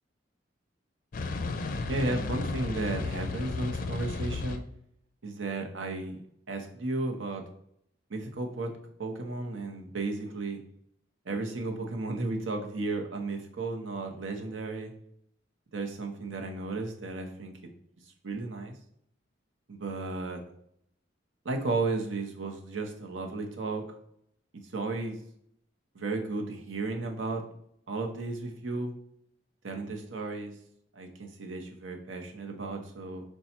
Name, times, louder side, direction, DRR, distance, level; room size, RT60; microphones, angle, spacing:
sound 1, 1.1-4.6, left 3 dB, 45° left, 0.4 m, -33 dB
voice 1, 1.9-4.6 5.2-6.2 6.5-7.4 8.1-8.7 9.0-10.6 11.3-14.9 15.7-17.5 18.2-18.7 19.7-20.4 21.4-23.8 24.7-25.2 25.9-27.5 27.9-28.9 29.6-30.5 31.0-33.2, right 3 dB, 85° right, 3 dB, 0.8 m, -34 dB
5.2 x 2.3 x 4.3 m, 0.71 s
head